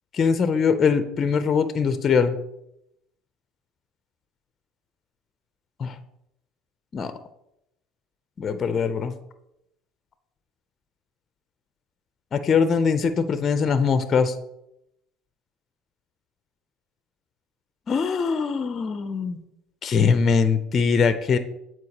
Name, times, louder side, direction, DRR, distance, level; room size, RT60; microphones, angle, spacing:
voice 1, 0.1-2.4 5.8-6.0 6.9-7.1 8.4-9.1 12.3-14.3 17.9-19.4 19.8-21.4, left 5 dB, 35° left, 10 dB, 0.4 m, -22 dB
7.9 x 4.5 x 2.9 m, 0.82 s
supercardioid pair, 115°, 0 cm